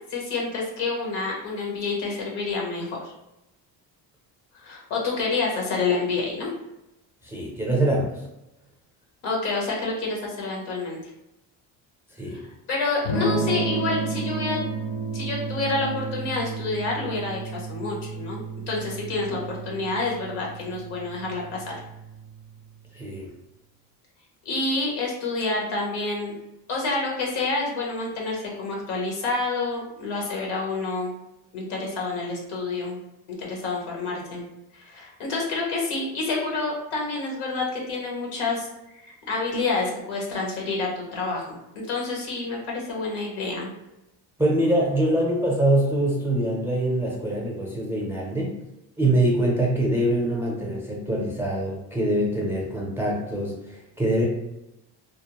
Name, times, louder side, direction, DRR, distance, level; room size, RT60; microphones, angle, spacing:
voice 1, 0.1-3.1 4.6-6.5 9.2-11.0 12.7-14.6 15.1-18.4 18.7-21.7 24.4-26.3 26.7-31.1 31.5-33.0 33.4-34.5 34.7-43.7, left 3 dB, 85° left, -2 dB, 1.0 m, -28 dB
voice 2, 7.2-8.2 12.2-12.4 22.9-23.3 44.4-48.6 49.0-54.3, right 1 dB, 5° right, -3 dB, 0.5 m, -24 dB
Electric guitar / Strum, 13.0-22.8, right 4 dB, 65° left, 0.8 m, -32 dB
2.5 x 2.0 x 2.9 m, 0.91 s
cardioid pair, 105°, 48 cm